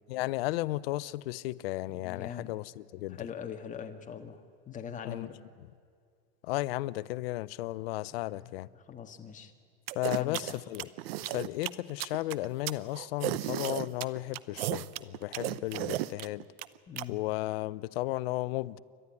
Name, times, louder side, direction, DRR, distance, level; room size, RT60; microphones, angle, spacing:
voice 1, 0.1-3.3 5.0-5.3 6.4-8.7 9.9-10.9 11.3-16.5 17.1-18.8, left 18 dB, 85° left, 0.6 m, -34 dB
voice 2, 1.9-2.5 3.0-4.4 4.7-5.4 8.3-8.5 8.9-9.5 10.1-10.6 16.9-17.2, left 8 dB, 25° left, 1.7 m, -42 dB
sound 1, 9.9-17.0, right 15 dB, 85° right, 0.8 m, -34 dB
29.0 x 12.5 x 9.9 m
supercardioid pair, 120°, 29 cm